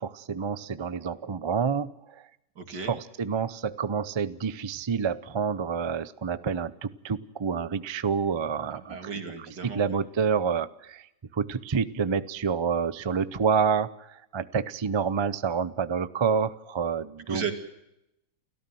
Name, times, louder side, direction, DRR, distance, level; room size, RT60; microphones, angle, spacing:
voice 1, 0.0-2.2 2.7-9.0 9.5-11.1 11.3-17.5, right 6 dB, 45° right, 15 dB, 0.3 m, -28 dB
voice 2, 2.6-2.9 8.6-9.9 17.3-17.5, right 6 dB, 90° right, 5 dB, 3.1 m, -35 dB
29.5 x 14.0 x 7.8 m, 0.86 s
omnidirectional pair, 1.8 m